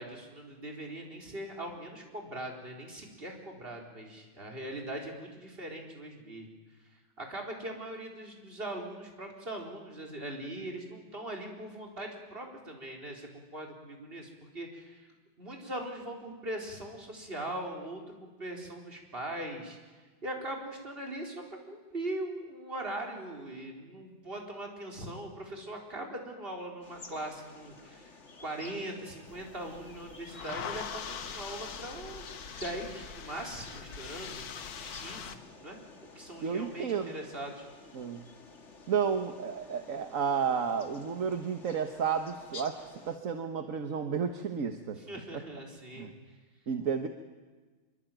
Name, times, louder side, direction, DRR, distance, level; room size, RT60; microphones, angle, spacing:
voice 1, 0.0-6.5 6.8-15.1 15.4-37.7 45.0-46.3, right 1 dB, 25° right, 1 dB, 4.5 m, -41 dB
sound 1, 26.8-43.2, left 3 dB, 35° left, 2.1 m, -52 dB
sound 2, 29.3-35.3, left 7 dB, 50° left, 1.5 m, -42 dB
voice 2, 36.4-37.2 37.9-38.3 38.9-45.0 46.0-46.1 46.7-47.1, right 6 dB, 45° right, 7 dB, 1.4 m, -32 dB
26.0 x 23.0 x 9.2 m, 1.3 s
omnidirectional pair, 2.3 m